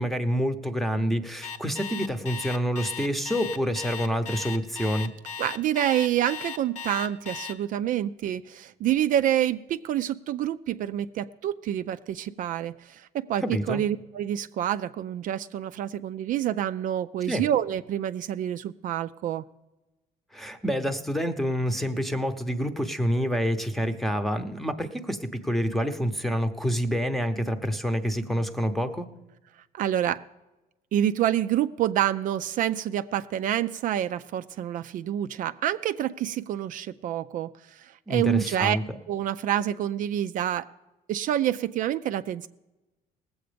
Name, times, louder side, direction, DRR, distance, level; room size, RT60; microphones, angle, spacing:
voice 1, 0.0-5.1 13.4-13.8 17.3-17.4 20.3-29.1 38.1-39.0, equal, ahead, 8 dB, 0.8 m, -27 dB
Alarm, 1.4-7.5, left 6 dB, 50° left, 0.9 m, -36 dB
voice 2, 5.4-19.4 29.7-30.2 30.9-38.8 39.1-40.7 41.1-42.5, right 11 dB, 60° right, 11 dB, 0.4 m, -27 dB
19.0 x 7.9 x 5.1 m, 1.1 s
cardioid pair, 140°, 15 cm